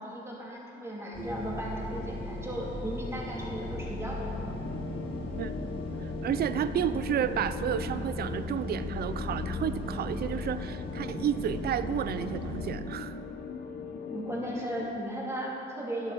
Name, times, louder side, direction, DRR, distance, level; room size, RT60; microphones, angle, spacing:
voice 1, 0.0-4.5 14.1-16.1, right 1 dB, 15° right, -5 dB, 3.1 m, -36 dB
sound 1, 1.1-12.8, left 1 dB, 25° left, 2.1 m, -37 dB
sound 2, 4.6-15.0, left 5 dB, 50° left, 0.8 m, -40 dB
voice 2, 6.0-13.2, right 9 dB, 50° right, 13 dB, 0.5 m, -31 dB
11.5 x 11.5 x 4.2 m, 2.9 s
cardioid pair, 90°, 20 cm